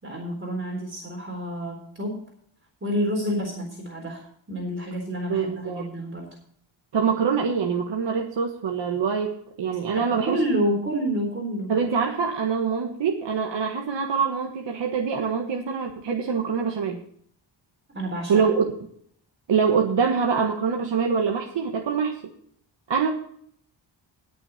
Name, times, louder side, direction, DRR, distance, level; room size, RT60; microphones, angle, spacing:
voice 1, 0.0-2.2 2.8-6.3 9.9-11.7 17.9-18.5, equal, 25° right, -1 dB, 3.8 m, -29 dB
voice 2, 5.3-5.9 6.9-10.4 11.7-17.0 18.3-18.6 19.5-22.1 22.9-23.1, right 6 dB, 65° right, 1 dB, 1.6 m, -24 dB
20.0 x 6.8 x 4.3 m, 0.64 s
wide cardioid pair, 115°, 47 cm